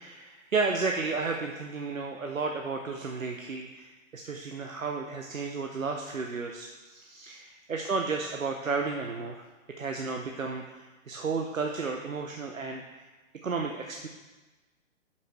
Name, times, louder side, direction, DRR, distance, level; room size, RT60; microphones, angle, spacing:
voice 1, 0.0-9.4 9.8-13.1 13.4-14.1, right 4 dB, 80° right, 3 dB, 0.8 m, -33 dB
11.5 x 5.6 x 3.2 m, 1.2 s
figure-of-eight pair, 120°, 40 cm